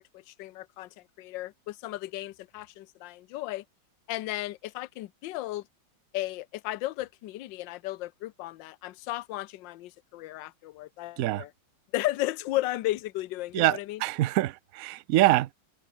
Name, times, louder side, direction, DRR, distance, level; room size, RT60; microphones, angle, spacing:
voice 1, 0.0-3.6 4.1-5.6 6.1-11.5 11.9-14.0, left 16 dB, 70° left, 1.4 m, -34 dB
voice 2, 13.5-15.5, right 16 dB, 85° right, 0.7 m, -25 dB
omnidirectional pair, 2.2 m